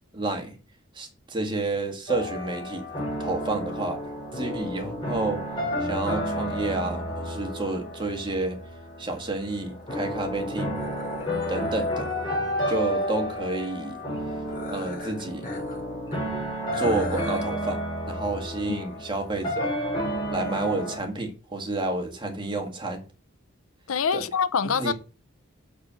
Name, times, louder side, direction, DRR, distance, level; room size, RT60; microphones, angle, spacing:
voice 1, 0.1-0.6 0.9-2.8 3.2-4.0 4.3-5.4 5.8-8.6 9.0-10.8 11.5-12.1 12.7-14.0 14.7-15.5 16.7-19.7 20.3-23.0 24.1-24.2 24.6-24.9, right 2 dB, 20° right, 1.9 m, -30 dB
sound 1, 2.1-21.0, equal, 20° left, 4.2 m, -31 dB
sound 2, 10.7-13.5 14.4-15.8 16.1-16.2 16.7-17.5, left 2 dB, 40° left, 4.2 m, -42 dB
voice 2, 23.9-24.9, left 6 dB, 80° left, 0.6 m, -25 dB
6.6 x 6.1 x 7.4 m
head